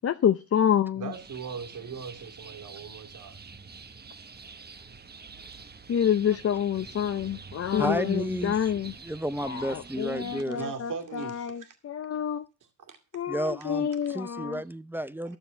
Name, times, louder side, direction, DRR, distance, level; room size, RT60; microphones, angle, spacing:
voice 1, 0.0-1.1 5.9-8.9 9.4-12.4 13.1-14.6, left 9 dB, 40° left, 0.6 m, -27 dB
voice 2, 1.0-3.4 10.5-11.7 12.8-13.0 14.0-14.2, right 5 dB, 55° right, 2.3 m, -39 dB
sound 1, 1.1-10.4, right 4 dB, 25° right, 1.1 m, -46 dB
voice 3, 7.8-10.6 13.3-15.4, equal, 5° right, 0.6 m, -32 dB
12.5 x 6.9 x 5.7 m
cardioid pair, 80°, 38 cm